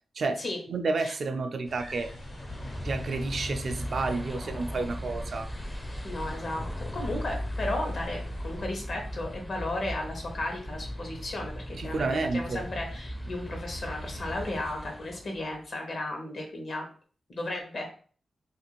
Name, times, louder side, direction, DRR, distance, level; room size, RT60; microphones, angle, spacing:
voice 1, 0.2-2.1 2.8-5.5 11.8-12.6, right 3 dB, 65° right, 6 dB, 0.3 m, -30 dB
sound 1, 1.7-8.6, equal, 85° left, 1.3 m, -44 dB
sound 2, 2.1-15.6, equal, 15° left, 0.4 m, -38 dB
voice 2, 6.0-16.9 17.3-17.9, left 1 dB, 70° left, 2 dB, 0.9 m, -34 dB
2.5 x 2.4 x 2.9 m, 0.42 s
cardioid pair, 50°, 0 cm